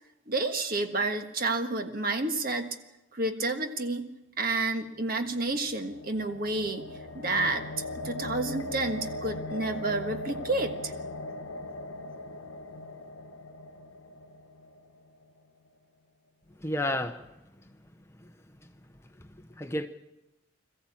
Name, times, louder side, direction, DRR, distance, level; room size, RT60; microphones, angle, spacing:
voice 1, 0.3-2.7 3.1-4.1 4.4-6.9 7.1-7.7 8.0-10.9, right 2 dB, 45° right, 6 dB, 1.5 m, -30 dB
sound 1, 5.1-15.2, left 2 dB, 85° left, 0.9 m, -40 dB
voice 2, 16.6-17.3 18.2-18.3 19.2-19.9, left 1 dB, 15° left, 7 dB, 0.7 m, -32 dB
21.5 x 14.5 x 8.6 m, 0.98 s
head